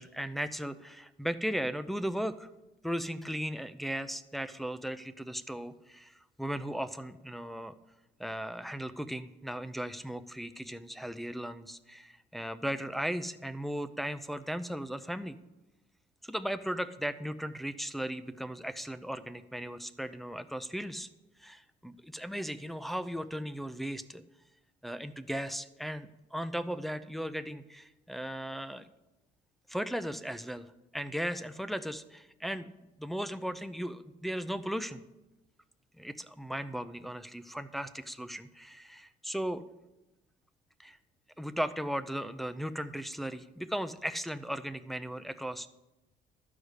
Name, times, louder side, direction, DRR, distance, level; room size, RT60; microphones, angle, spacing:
voice 1, 0.0-2.5 2.8-7.7 8.2-15.4 16.2-21.1 21.4-24.2 24.8-28.9 29.7-30.7 30.9-32.7 33.0-35.0 36.0-39.6 40.8-41.0 41.4-45.7, equal, ahead, 9 dB, 0.5 m, -37 dB
12.5 x 4.9 x 8.1 m, 1.0 s
cardioid pair, 110°, 17 cm